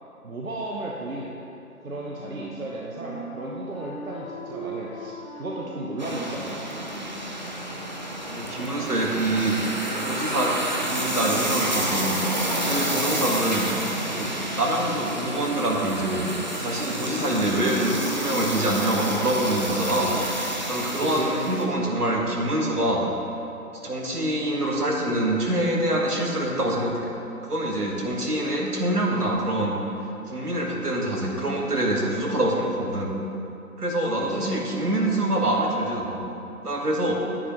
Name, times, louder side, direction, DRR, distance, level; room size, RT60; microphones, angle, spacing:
voice 1, 0.2-1.4 1.8-6.8 13.1-13.4 21.1-21.3 34.1-34.4, right 2 dB, 65° right, -3 dB, 1.1 m, -34 dB
Wind instrument woodwind instrument, 1.8-7.7, right 2 dB, 10° left, 1.7 m, -40 dB
sound 1, 6.0-21.6, right 1 dB, 30° right, 0.6 m, -29 dB
voice 2, 8.3-9.6 10.0-10.6 10.9-12.2 12.6-13.7 14.1-16.3 16.6-20.1 20.7-23.1 23.8-27.1 27.4-29.7 30.3-33.1 33.8-36.2 36.6-37.2, right 1 dB, 80° right, -1 dB, 1.8 m, -25 dB
10.0 x 9.9 x 3.1 m, 3.0 s
figure-of-eight pair, 150°, 45 cm